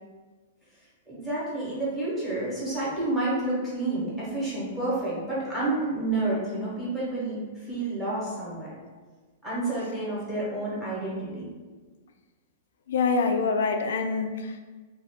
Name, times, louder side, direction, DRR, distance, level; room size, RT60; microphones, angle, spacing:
voice 1, 1.1-8.7 9.4-11.5, right 2 dB, 5° right, -9 dB, 1.0 m, -29 dB
voice 2, 12.9-14.6, left 4 dB, 75° left, 6 dB, 0.3 m, -25 dB
2.4 x 2.3 x 3.4 m, 1.4 s
supercardioid pair, 165°, 0 cm